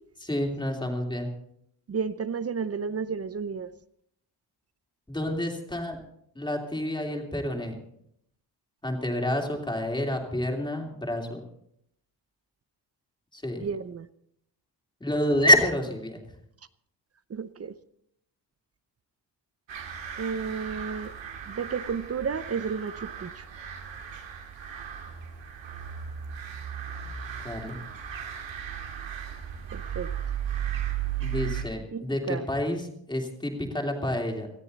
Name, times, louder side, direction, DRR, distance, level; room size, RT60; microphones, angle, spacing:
voice 1, 0.2-1.3 5.1-6.0 6.3-7.8 8.8-11.4 13.3-13.7 15.0-16.2 27.4-27.8 31.2-34.5, left 1 dB, 10° left, 2.9 m, -28 dB
voice 2, 1.9-3.7 13.6-14.1 17.3-17.7 20.2-21.1 21.5-23.5 29.7-30.1 31.9-32.4, right 6 dB, 35° right, 0.7 m, -32 dB
sound 1, 19.7-31.6, right 9 dB, 90° right, 2.8 m, -36 dB
19.5 x 13.5 x 4.1 m
cardioid pair, 115°, 43 cm